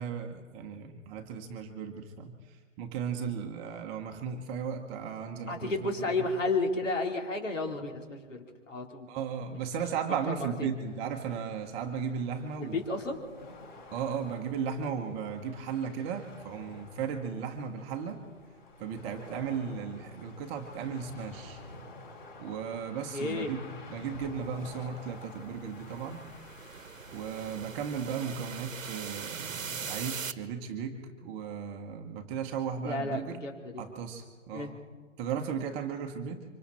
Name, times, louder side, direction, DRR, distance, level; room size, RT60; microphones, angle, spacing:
voice 1, 0.0-5.9 6.2-6.3 9.1-12.8 13.9-18.2 18.8-21.6 22.4-26.3 27.1-33.4 33.8-34.8 35.2-36.4, right 7 dB, 15° right, 3 dB, 1.0 m, -36 dB
voice 2, 5.5-9.1 10.3-10.7 12.7-13.2 23.1-23.5 32.8-33.8 34.5-34.7, left 3 dB, 70° left, 2 dB, 4.0 m, -32 dB
sound 1, 10.8-27.8, left 2 dB, 40° left, 6.3 m, -50 dB
sound 2, 24.3-30.3, right 6 dB, 80° right, 1.1 m, -41 dB
26.0 x 25.0 x 4.3 m, 1.5 s
figure-of-eight pair, 145°, 39 cm